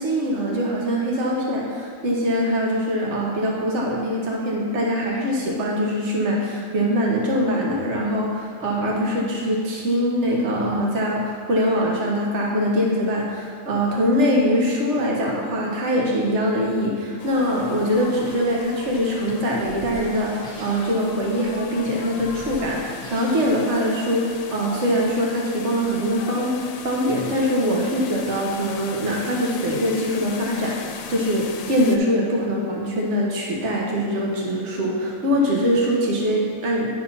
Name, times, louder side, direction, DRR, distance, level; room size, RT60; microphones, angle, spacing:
voice 1, 0.0-26.5 26.8-36.9, equal, 60° right, -2 dB, 1.5 m, -23 dB
sound 1, 17.2-32.0, left 6 dB, 85° left, 1.0 m, -38 dB
sound 2, 18.2-23.6, equal, 30° right, 1.2 m, -42 dB
10.0 x 3.7 x 5.7 m, 2.2 s
omnidirectional pair, 1.4 m